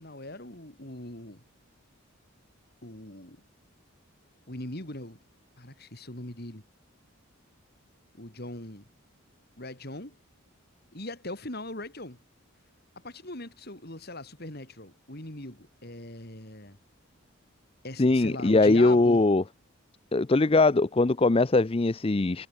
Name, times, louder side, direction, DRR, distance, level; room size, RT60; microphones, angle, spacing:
voice 1, 0.0-1.4 2.8-3.4 4.5-5.2 5.6-6.6 8.1-8.9 9.6-10.2 10.9-12.2 13.0-16.8 17.8-19.2, left 1 dB, 45° left, 4.2 m, -40 dB
voice 2, 18.0-19.4 20.1-22.5, left 2 dB, 25° left, 0.5 m, -21 dB
head